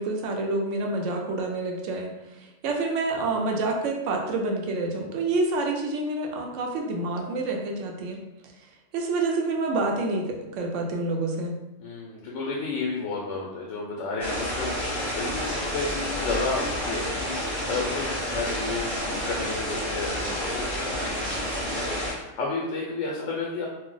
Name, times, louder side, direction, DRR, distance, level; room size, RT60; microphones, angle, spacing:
voice 1, 0.0-8.2 8.9-11.5, right 2 dB, 75° right, 1 dB, 0.9 m, -28 dB
voice 2, 11.8-23.7, left 3 dB, 80° left, -3 dB, 0.9 m, -32 dB
sound 1, 14.2-22.1, equal, 25° left, 1.2 m, -30 dB
2.6 x 2.0 x 3.8 m, 1.0 s
omnidirectional pair, 1.3 m